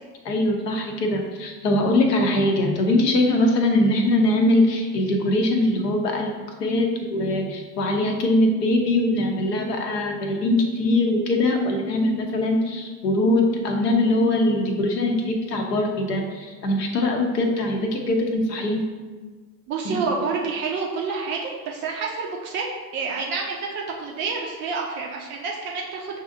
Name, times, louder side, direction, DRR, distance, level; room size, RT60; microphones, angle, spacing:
voice 1, 0.2-6.3 6.6-18.9 19.8-20.0, left 1 dB, 75° left, 2 dB, 0.8 m, -22 dB
voice 2, 19.7-22.7 22.9-26.2, right 4 dB, 25° right, -1 dB, 0.3 m, -28 dB
6.2 x 2.6 x 2.6 m, 1.4 s
figure-of-eight pair, 75°, 49 cm